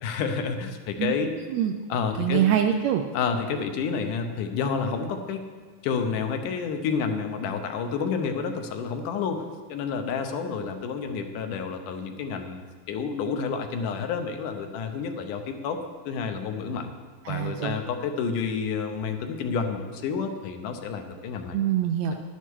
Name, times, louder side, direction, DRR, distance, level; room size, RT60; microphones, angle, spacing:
voice 1, 0.0-1.3 1.9-2.5 3.1-5.4 5.8-9.4 9.7-12.6 12.9-15.8 16.1-16.9 17.3-21.6, left 5 dB, 80° left, 6 dB, 2.4 m, -29 dB
voice 2, 2.2-3.0 17.2-17.8 21.5-22.1, right 10 dB, 80° right, 5 dB, 1.6 m, -24 dB
11.0 x 10.5 x 4.6 m, 1.5 s
omnidirectional pair, 3.6 m